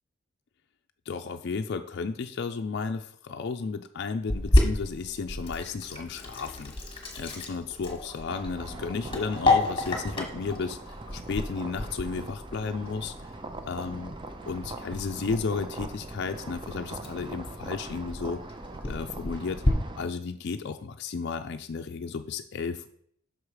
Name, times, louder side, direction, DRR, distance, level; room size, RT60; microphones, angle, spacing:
voice 1, 1.1-6.7 7.2-13.3 13.7-14.1 14.5-18.4 18.9-19.6 20.0-22.9, left 4 dB, 55° left, 6 dB, 0.4 m, -33 dB
Sink (filling or washing), 4.3-19.7, left 2 dB, 25° left, 1.2 m, -31 dB
sound 1, 8.3-20.1, right 2 dB, 25° right, 0.6 m, -42 dB
6.1 x 4.8 x 4.8 m, 0.65 s
head